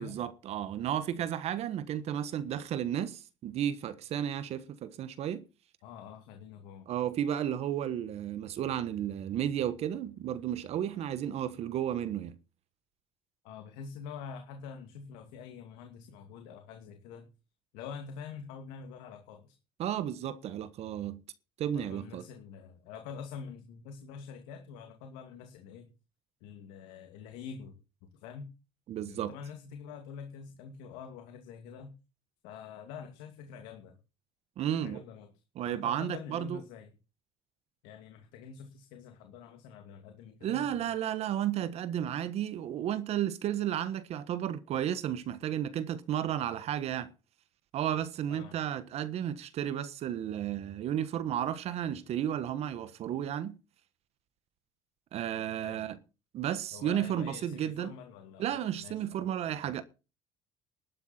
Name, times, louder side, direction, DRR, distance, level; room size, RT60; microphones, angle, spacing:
voice 1, 0.0-5.4 6.9-12.4 19.8-21.2 21.6-22.2 28.9-29.3 34.6-35.0 35.5-36.6 40.4-47.1 47.7-53.5 55.1-56.0 56.3-57.9 58.4-59.8, right 10 dB, 60° right, 1.3 m, -33 dB
voice 2, 5.8-6.9 13.4-17.3 17.7-19.6 21.7-25.9 26.4-28.5 29.1-31.9 32.4-34.0 34.7-35.3 35.7-36.9 37.8-40.9 48.3-48.6 55.5-55.8 56.7-58.5 58.8-59.2, left 6 dB, 90° left, 2.5 m, -46 dB
12.5 x 12.0 x 4.4 m
cardioid pair, 115°, 12 cm